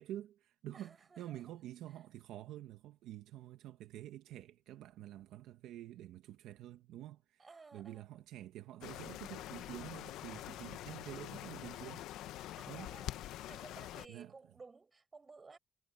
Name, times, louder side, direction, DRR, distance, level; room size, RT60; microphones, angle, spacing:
voice 1, 0.0-7.4 7.7-12.1 12.7-12.9 14.1-14.3, right 13 dB, 90° right, 1.4 m, -48 dB
voice 2, 0.7-1.5 7.4-8.2 12.6-15.6, right 4 dB, 30° right, 7.8 m, -56 dB
sound 1, 8.8-14.1, left 14 dB, 90° left, 0.8 m, -45 dB
cardioid pair, 90°, 0 cm